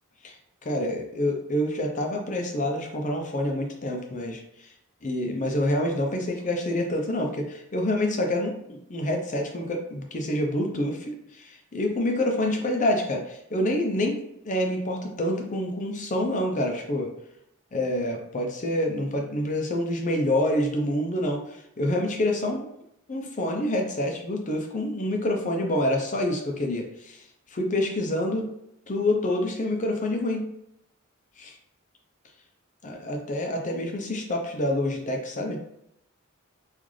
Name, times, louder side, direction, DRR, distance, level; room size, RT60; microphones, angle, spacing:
voice 1, 0.6-4.7 5.0-17.1 17.7-22.7 23.1-27.2 27.5-28.5 28.9-30.5 31.4-31.6 32.8-35.6, left 1 dB, 35° left, 2 dB, 0.6 m, -27 dB
3.8 x 2.5 x 3.1 m, 0.79 s
head